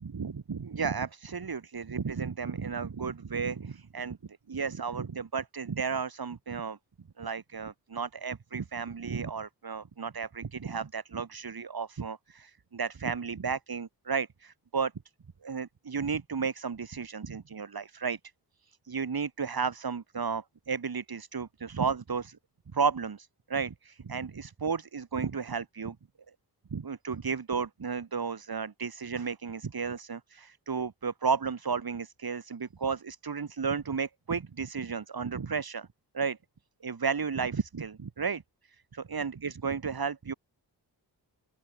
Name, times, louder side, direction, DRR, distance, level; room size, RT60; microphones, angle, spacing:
voice 1, 0.1-4.2 4.5-6.8 7.2-14.9 15.4-18.2 18.6-22.4 22.7-26.0 26.7-35.9 36.1-36.4 36.8-38.4 38.7-40.3, right 5 dB, 60° right, 5.1 m, -33 dB
open air
wide cardioid pair, 100°, 41 cm